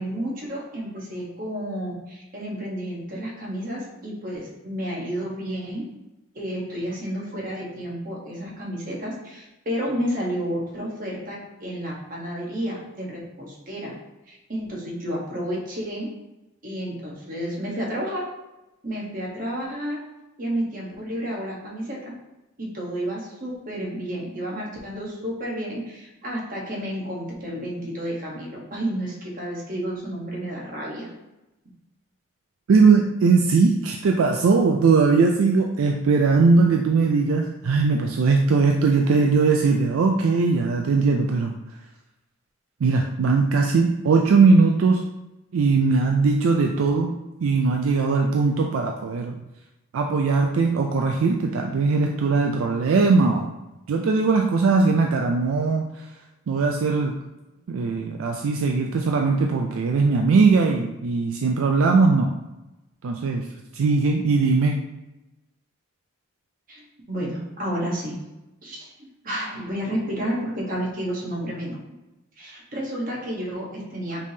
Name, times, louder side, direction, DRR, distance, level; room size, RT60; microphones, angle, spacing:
voice 1, 0.0-5.8 6.3-14.0 14.3-16.1 16.6-18.2 18.8-20.0 20.4-22.1 22.6-31.1 66.7-66.8 67.1-68.2 68.6-68.9 69.2-71.8 72.4-74.3, equal, 40° right, -3 dB, 1.1 m, -31 dB
voice 2, 32.7-41.5 42.8-45.0 45.5-47.1 47.4-49.4 49.9-53.5 53.9-55.8 56.5-57.1 57.7-62.3 63.0-63.5 63.7-64.8, right 4 dB, 80° right, 2 dB, 0.4 m, -20 dB
5.2 x 3.4 x 2.8 m, 0.98 s
head